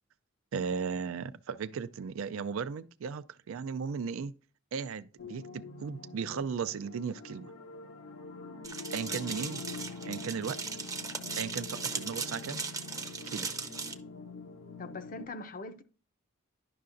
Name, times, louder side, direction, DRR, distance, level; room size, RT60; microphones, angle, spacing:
voice 1, 0.5-4.3 4.7-7.5 8.9-9.6 10.1-10.6 11.4-12.6 13.3-13.5, right 6 dB, 80° right, 0.4 m, -36 dB
sound 1, 5.2-15.3, left 3 dB, 85° left, 0.9 m, -45 dB
sound 2, 8.6-13.9, right 5 dB, 15° right, 0.6 m, -38 dB
voice 2, 14.8-15.8, left 3 dB, 45° left, 0.6 m, -41 dB
11.0 x 5.6 x 2.6 m
head